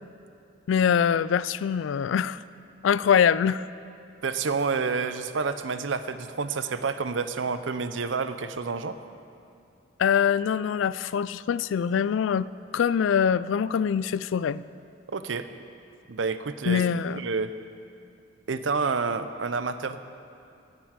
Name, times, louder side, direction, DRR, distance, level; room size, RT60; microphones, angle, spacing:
voice 1, 0.7-2.4 2.8-3.7 10.0-12.5 12.7-14.6 16.7-17.2, left 7 dB, 85° left, 17 dB, 0.3 m, -23 dB
voice 2, 4.2-9.0 15.1-15.5 16.1-16.8 17.1-17.5 18.5-20.0, right 4 dB, 75° right, 11 dB, 0.6 m, -29 dB
9.7 x 9.0 x 9.6 m, 2.6 s
head